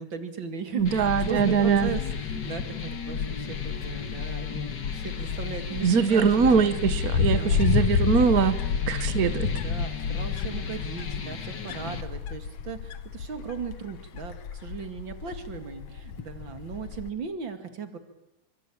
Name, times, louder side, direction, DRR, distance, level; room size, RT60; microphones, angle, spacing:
voice 1, 0.0-6.7 7.3-7.7 9.0-18.0, right 6 dB, 40° right, 8 dB, 2.7 m, -37 dB
voice 2, 0.7-1.9 5.8-8.6 8.9-9.5, right 6 dB, 90° right, 12 dB, 0.8 m, -22 dB
Wind, 0.8-17.1, left 6 dB, 55° left, 2.0 m, -31 dB
sound 1, 0.9-12.0, left 6 dB, 40° left, 2.0 m, -37 dB
27.0 x 25.0 x 8.8 m, 0.91 s
omnidirectional pair, 3.6 m